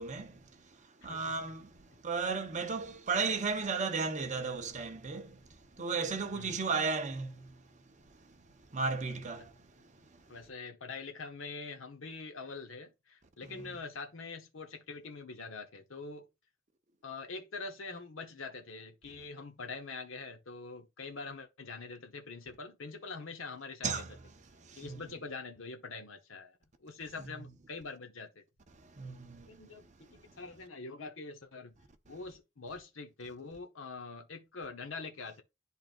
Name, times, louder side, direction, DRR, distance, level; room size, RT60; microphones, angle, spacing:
voice 1, 0.0-10.4 13.5-13.7 23.8-24.1 24.5-25.0 27.2-27.5 28.7-30.3, right 4 dB, 35° right, 0.9 m, -36 dB
voice 2, 1.0-1.3 6.3-6.6 10.3-16.3 17.0-24.0 24.8-28.4 29.5-31.7 32.1-35.4, left 4 dB, 75° left, 1.0 m, -44 dB
11.0 x 3.7 x 2.5 m
head